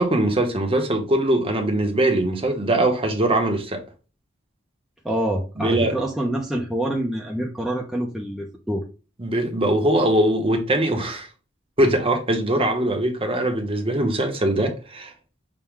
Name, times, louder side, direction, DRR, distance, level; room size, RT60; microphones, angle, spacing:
voice 1, 0.0-3.8 5.6-5.9 9.2-11.3 11.8-15.1, right 1 dB, 30° right, 0.8 m, -21 dB
voice 2, 5.0-8.8, right 1 dB, ahead, 0.5 m, -26 dB
5.9 x 2.2 x 3.6 m
head